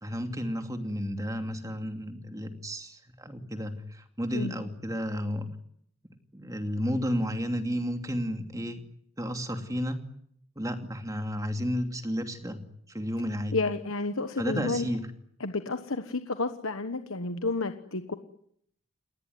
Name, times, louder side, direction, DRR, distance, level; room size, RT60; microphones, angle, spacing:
voice 1, 0.0-5.5 6.3-8.8 9.2-10.0 10.6-12.6 12.9-13.6 14.4-15.0, equal, 15° right, 6 dB, 2.6 m, -32 dB
voice 2, 13.5-14.9 15.4-18.1, left 3 dB, 65° left, 8 dB, 1.3 m, -31 dB
29.5 x 19.5 x 9.5 m, 0.70 s
head